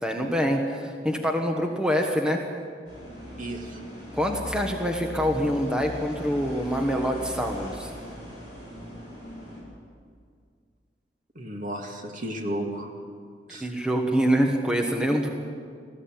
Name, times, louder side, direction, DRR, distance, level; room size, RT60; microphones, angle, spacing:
voice 1, 0.0-2.4 4.1-7.9 13.6-15.3, equal, 5° right, 2 dB, 1.4 m, -25 dB
sound 1, 2.8-9.6, equal, 30° right, 7.7 m, -40 dB
voice 2, 3.4-3.8 11.4-12.9 13.5-13.7, right 1 dB, 50° right, 2 dB, 2.2 m, -33 dB
20.0 x 15.0 x 8.9 m, 2.1 s
head